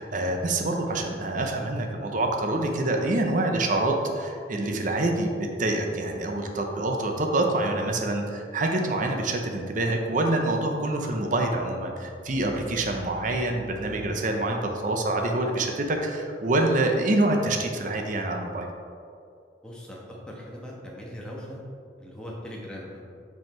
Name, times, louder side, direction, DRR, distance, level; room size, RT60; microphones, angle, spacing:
voice 1, 0.0-18.7, right 2 dB, 45° right, 2 dB, 0.6 m, -26 dB
voice 2, 19.6-21.6 22.0-23.0, equal, 5° left, -4 dB, 1.1 m, -40 dB
5.7 x 5.3 x 4.3 m, 2.4 s
head